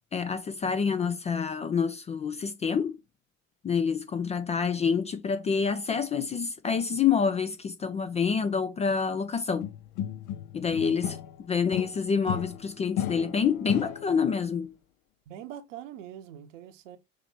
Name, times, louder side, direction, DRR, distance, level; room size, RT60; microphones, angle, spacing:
voice 1, 0.1-3.0 3.6-9.7 10.5-14.7, left 6 dB, 20° left, 0.3 m, -27 dB
sound 1, 9.6-11.4 11.7-14.3, left 10 dB, 55° left, 0.7 m, -34 dB
voice 2, 10.8-11.2 15.3-17.0, right 10 dB, 65° right, 0.9 m, -43 dB
5.6 x 3.2 x 2.9 m
figure-of-eight pair, 60°, 40 cm